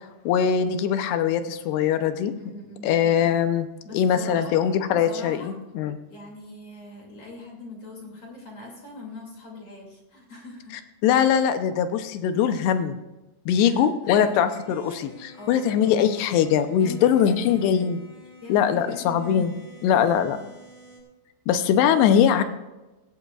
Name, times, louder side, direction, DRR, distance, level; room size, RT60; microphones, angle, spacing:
voice 1, 0.3-2.3 2.8-3.7 3.9-6.0 11.0-13.0 13.5-18.0 18.5-19.5 19.8-20.4 21.5-22.4, left 8 dB, 85° left, 9 dB, 2.9 m, -21 dB
voice 2, 2.4-2.9 3.8-5.5 6.1-10.7 13.6-14.3 15.4-15.7 16.8-17.8 18.4-19.2 20.0-20.5, left 2 dB, 40° left, -1 dB, 3.2 m, -42 dB
sound 1, 14.2-21.0, left 1 dB, 60° right, 7.3 m, -48 dB
18.5 x 16.5 x 2.4 m, 1.1 s
omnidirectional pair, 4.7 m